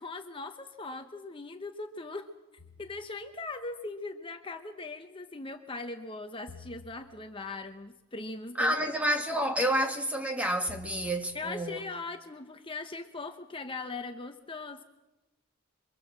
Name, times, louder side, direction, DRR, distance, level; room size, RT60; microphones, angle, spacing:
voice 1, 0.0-2.3 2.8-8.8 11.3-14.8, left 3 dB, 25° left, 1.0 m, -40 dB
sound 1, 2.6-3.4 6.5-7.5 10.7-11.6, left 4 dB, 85° left, 1.4 m, -51 dB
voice 2, 8.6-11.8, right 1 dB, 5° right, 1.9 m, -29 dB
27.5 x 23.5 x 7.5 m
head